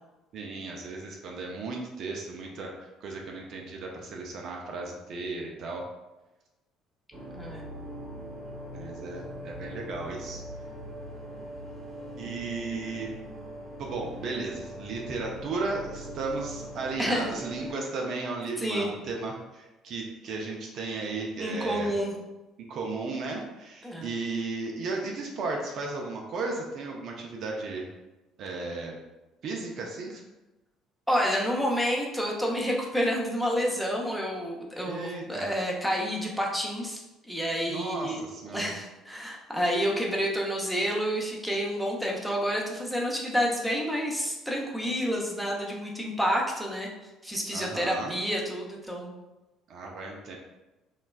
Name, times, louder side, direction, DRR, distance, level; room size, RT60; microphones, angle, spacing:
voice 1, 0.3-5.9 8.7-10.4 12.2-13.1 13.8-21.9 22.7-27.9 28.4-29.0 29.4-30.2 34.9-35.5 37.7-38.7 47.5-48.1 49.7-50.4, right 3 dB, 60° right, 0 dB, 0.4 m, -35 dB
sound 1, 7.1-17.7, equal, 35° right, 0.9 m, -41 dB
voice 2, 7.3-7.6 17.0-17.3 18.6-18.9 21.4-22.1 23.8-24.1 31.1-37.0 37.3-38.2 38.5-46.9 47.2-49.1, equal, ahead, -2 dB, 0.7 m, -29 dB
3.1 x 2.2 x 2.2 m, 1.0 s
hypercardioid pair, 60°, 0 cm